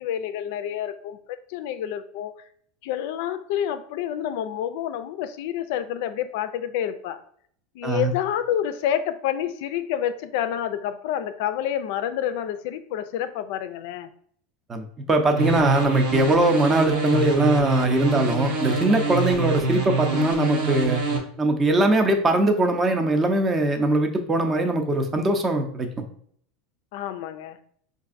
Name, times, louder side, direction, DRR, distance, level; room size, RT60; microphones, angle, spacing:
voice 1, 0.0-2.3 2.8-7.2 7.7-14.1 26.9-27.6, left 10 dB, 70° left, 10 dB, 0.3 m, -28 dB
voice 2, 14.7-21.0 21.4-25.9, right 2 dB, 20° right, 5 dB, 0.6 m, -21 dB
sound 1, 15.3-21.2, right 4 dB, 75° right, 0.9 m, -25 dB
4.6 x 2.5 x 2.5 m, 0.62 s
supercardioid pair, 115°, 0 cm